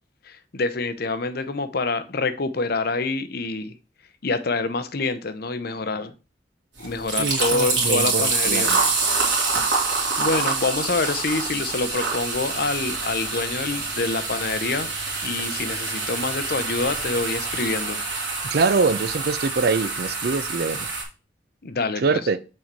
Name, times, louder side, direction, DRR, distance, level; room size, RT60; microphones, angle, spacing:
voice 1, 0.2-3.7 4.2-6.1 6.8-8.7 10.2-14.9 15.2-18.0 21.6-22.2, left 3 dB, 55° left, 0.7 m, -26 dB
sound 1, 6.8-21.0, right 4 dB, 80° right, 2.5 m, -26 dB
voice 2, 7.2-8.8 18.5-20.9 22.0-22.4, right 4 dB, 60° right, 0.5 m, -24 dB
6.3 x 4.4 x 4.6 m
head